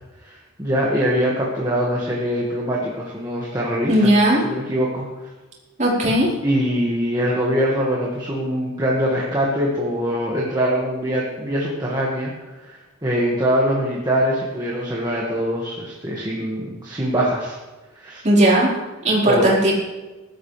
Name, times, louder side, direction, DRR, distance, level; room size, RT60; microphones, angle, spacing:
voice 1, 0.2-4.1 4.4-5.1 6.4-12.3 12.6-17.6 18.0-18.2 19.2-19.5, equal, 20° right, -4 dB, 1.9 m, -23 dB
voice 2, 3.9-4.4 5.8-6.3 18.2-18.8 19.0-19.7, right 1 dB, 35° right, -5 dB, 4.7 m, -16 dB
20.5 x 12.5 x 3.4 m, 1.2 s
head